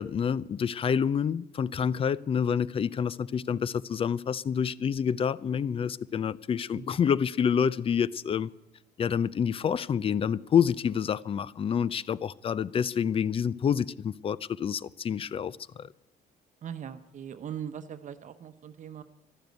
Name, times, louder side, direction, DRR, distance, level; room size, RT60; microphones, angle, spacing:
voice 1, 0.0-8.5 9.0-15.9, left 7 dB, 35° left, 0.5 m, -28 dB
voice 2, 16.6-19.0, right 8 dB, 45° right, 0.9 m, -40 dB
12.5 x 12.0 x 9.2 m
cardioid pair, 110°, 17 cm